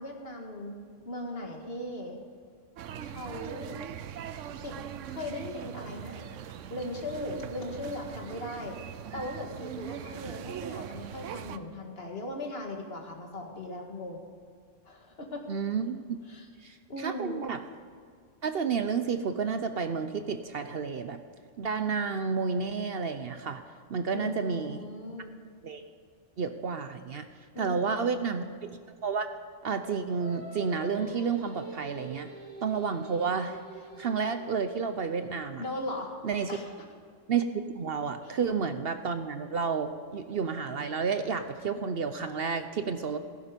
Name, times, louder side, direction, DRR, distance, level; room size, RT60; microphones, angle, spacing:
voice 1, 0.0-2.2 3.0-3.8 4.6-4.8 5.1-6.3 6.7-8.8 9.1-14.2 14.9-15.5 16.3-16.5 16.9-17.4 24.1-25.4 27.5-28.4 35.6-36.1 36.5-36.7 38.2-38.4, left 1 dB, 50° left, 2 dB, 2.2 m, -38 dB
sound 1, 2.8-11.6, right 9 dB, 80° right, 1.0 m, -41 dB
voice 2, 15.5-16.0 16.6-17.6 18.4-21.2 21.6-23.6 23.9-24.9 25.6-25.8 26.4-27.3 27.6-29.3 29.6-32.3 32.6-33.6 34.0-35.6 36.2-36.6 37.3-43.2, right 5 dB, 55° right, 9 dB, 0.9 m, -31 dB
Singing, 30.1-35.4, right 2 dB, 40° right, 4.1 m, -46 dB
16.5 x 15.0 x 5.2 m, 2.1 s
omnidirectional pair, 1.3 m